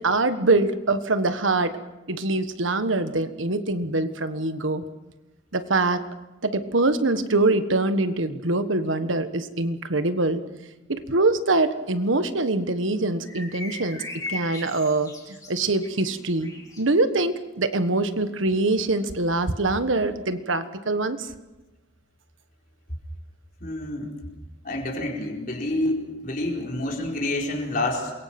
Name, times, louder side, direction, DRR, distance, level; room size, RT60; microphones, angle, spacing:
voice 1, 0.0-1.8 2.1-4.9 5.5-6.1 6.4-10.4 10.9-14.0 14.3-21.3, right 2 dB, 80° right, 10 dB, 1.4 m, -24 dB
sound 1, 13.2-16.9, left 2 dB, 15° left, 3.1 m, -38 dB
voice 2, 23.6-24.1 24.6-28.1, left 1 dB, 45° left, 0 dB, 4.5 m, -28 dB
27.5 x 22.5 x 6.1 m, 1.1 s
head